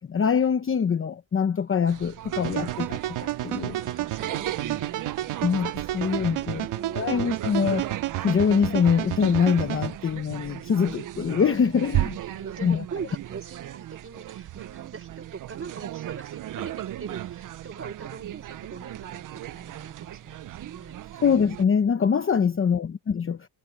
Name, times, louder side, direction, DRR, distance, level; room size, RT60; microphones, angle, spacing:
voice 1, 0.1-3.8 5.4-6.7 6.9-7.9 8.2-12.2 12.6-12.8 21.1-23.5, left 6 dB, 25° left, 0.9 m, -24 dB
sound 1, 1.9-21.6, right 13 dB, 40° right, 0.5 m, -36 dB
sound 2, 2.3-9.9, right 14 dB, 85° right, 1.7 m, -31 dB
voice 2, 3.7-4.9 6.0-7.4 12.2-21.0 22.3-22.6, right 6 dB, 25° right, 5.1 m, -41 dB
cardioid pair, 160°, 49 cm